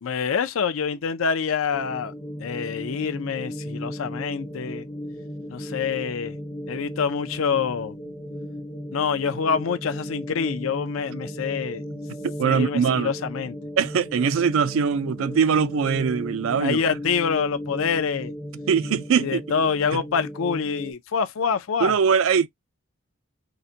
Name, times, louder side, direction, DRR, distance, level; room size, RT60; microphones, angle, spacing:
voice 1, 0.0-2.1 2.4-4.9 5.5-6.4 6.7-8.0 8.9-11.8 12.4-13.6 16.6-18.3 19.2-21.9, left 6 dB, 75° left, 0.5 m, -26 dB
sound 1, 1.7-20.9, equal, 20° left, 0.5 m, -36 dB
voice 2, 12.2-13.1 13.8-16.8 18.7-19.4 19.9-20.0 21.8-22.5, right 6 dB, 75° right, 0.4 m, -22 dB
3.8 x 2.1 x 2.7 m
head